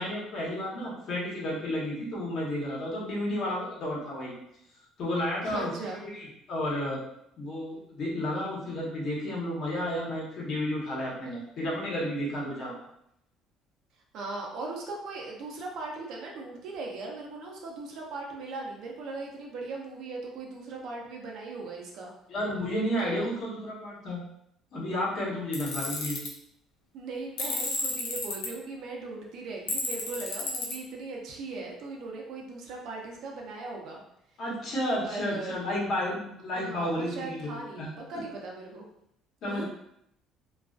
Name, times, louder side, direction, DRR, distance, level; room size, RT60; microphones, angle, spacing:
voice 1, 0.0-4.3 5.0-7.0 7.4-12.7 22.3-24.2 24.7-26.2 34.4-37.9 39.4-39.6, left 1 dB, 55° left, -4 dB, 0.9 m, -32 dB
voice 2, 5.4-6.0 14.1-22.1 23.0-23.3 26.9-34.0 35.0-35.6 36.5-38.9 39.5-39.6, right 3 dB, 65° right, 0 dB, 0.6 m, -38 dB
Tools, 25.5-26.3 27.4-28.5 29.7-30.7, left 3 dB, 80° left, 0.5 m, -31 dB
2.3 x 2.2 x 2.4 m, 0.75 s
cardioid pair, 125°, 0 cm